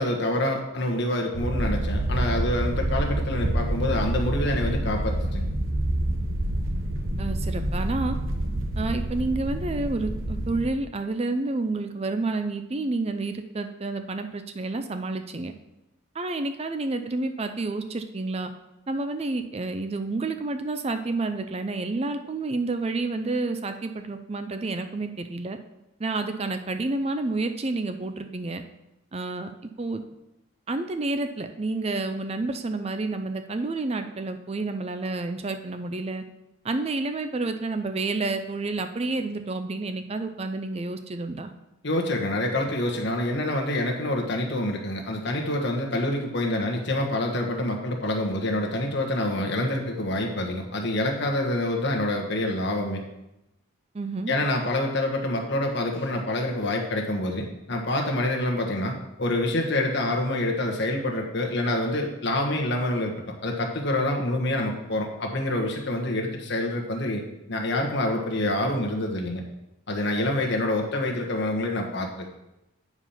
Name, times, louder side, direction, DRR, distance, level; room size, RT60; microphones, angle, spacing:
voice 1, 0.0-5.5 41.8-53.0 54.3-63.1 63.4-67.2 67.5-69.4 69.9-72.3, left 1 dB, 55° left, 1 dB, 1.3 m, -27 dB
sound 1, 1.3-10.7, right 1 dB, 70° right, 1.0 m, -27 dB
voice 2, 7.2-8.2 8.8-15.5 16.1-18.5 18.9-25.6 26.0-28.6 29.1-29.5 29.8-30.0 30.7-36.2 36.6-41.5 53.9-54.3, right 3 dB, 30° right, 8 dB, 0.4 m, -29 dB
8.6 x 4.9 x 5.6 m, 0.92 s
head